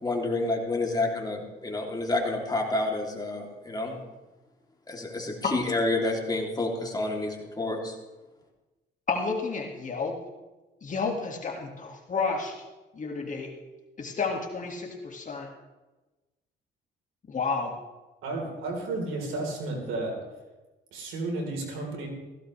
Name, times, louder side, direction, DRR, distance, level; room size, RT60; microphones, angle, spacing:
voice 1, 0.0-4.0 4.9-8.0, left 2 dB, 20° left, 0 dB, 2.9 m, -29 dB
voice 2, 9.1-10.2 10.8-12.6 12.9-13.5 14.0-15.5 17.3-17.8, left 4 dB, 40° left, 1 dB, 2.0 m, -31 dB
voice 3, 18.2-20.2 20.9-22.1, right 2 dB, 90° right, 1 dB, 3.8 m, -32 dB
16.5 x 15.5 x 3.3 m, 1.1 s
cardioid pair, 90°, 20 cm